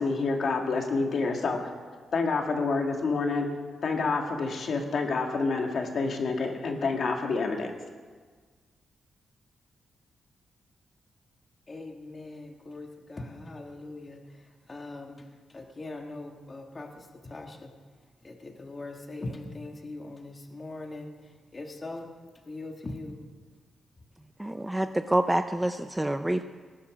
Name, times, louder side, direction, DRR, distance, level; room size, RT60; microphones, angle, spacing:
voice 1, 0.0-1.7 2.1-3.5 3.8-7.7, left 4 dB, 50° left, 3 dB, 1.8 m, -28 dB
voice 2, 11.7-14.2 14.7-15.2 15.5-17.7 18.2-21.1 21.5-22.1 22.5-23.2, left 2 dB, 25° left, 3 dB, 1.4 m, -41 dB
voice 3, 24.4-26.5, right 1 dB, 5° right, 9 dB, 0.4 m, -27 dB
18.5 x 9.8 x 6.2 m, 1.5 s
wide cardioid pair, 165°, 0 cm